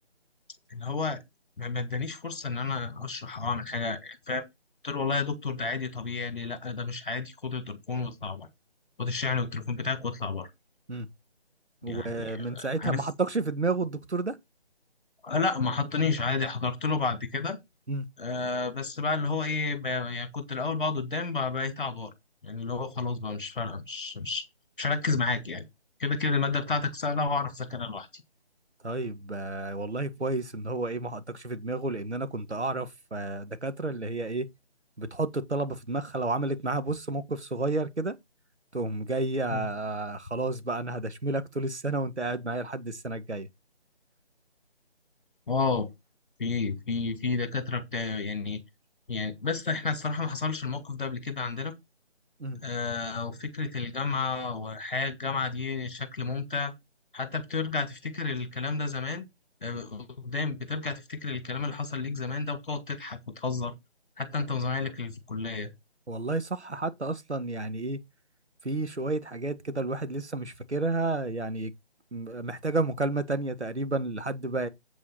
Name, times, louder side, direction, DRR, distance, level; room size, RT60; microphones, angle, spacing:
voice 1, 0.7-1.2 1.6-4.4 4.8-8.5 9.0-10.5 11.9-13.0 15.2-17.6 18.2-22.1 22.4-24.4 24.8-25.7 26.0-28.2 39.5-39.7 45.5-45.9 46.4-48.6 49.1-51.7 52.6-56.7 57.1-59.3 59.6-63.7 64.2-65.7, left 4 dB, 50° left, 2.2 m, -31 dB
voice 2, 11.8-14.4 17.9-18.1 28.8-34.5 35.0-38.2 38.7-43.5 52.4-52.6 59.7-59.8 66.1-68.0 68.6-71.7 72.1-74.7, right 2 dB, 85° right, 1.7 m, -31 dB
8.3 x 5.3 x 5.9 m
figure-of-eight pair, 160°, 33 cm